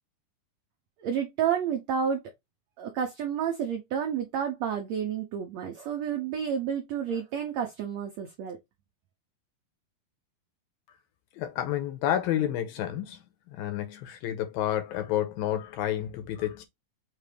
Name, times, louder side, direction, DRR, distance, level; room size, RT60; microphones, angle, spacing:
voice 1, 1.0-2.2 2.8-8.6, right 8 dB, 80° right, 1.5 m, -30 dB
voice 2, 11.4-13.2 13.5-16.7, left 11 dB, 80° left, 2.6 m, -30 dB
6.3 x 2.5 x 3.3 m
omnidirectional pair, 4.2 m